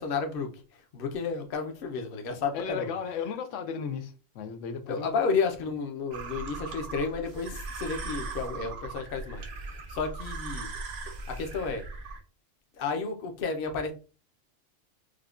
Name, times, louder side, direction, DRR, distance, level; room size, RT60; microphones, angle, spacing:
voice 1, 0.0-2.9 4.9-10.7 11.3-11.9 12.8-13.9, left 5 dB, 55° left, 0.8 m, -32 dB
voice 2, 2.5-5.1, left 6 dB, 90° left, 0.9 m, -35 dB
sound 1, 6.1-12.2, right 3 dB, 80° right, 1.1 m, -39 dB
4.9 x 2.2 x 2.4 m
omnidirectional pair, 1.2 m